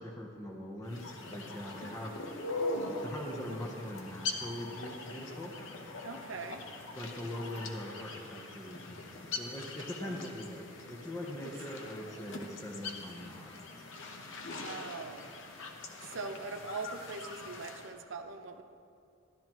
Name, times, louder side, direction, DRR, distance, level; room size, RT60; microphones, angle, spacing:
voice 1, 0.0-2.2 3.0-5.6 6.9-13.7, left 1 dB, 15° left, -1 dB, 0.9 m, -42 dB
sound 1, 0.9-17.9, left 3 dB, 70° left, 0.9 m, -42 dB
voice 2, 6.0-6.6 10.0-10.3 11.4-11.5 14.4-15.3 16.0-18.6, right 4 dB, 70° right, 6 dB, 0.7 m, -42 dB
13.0 x 12.0 x 3.0 m, 2.5 s
head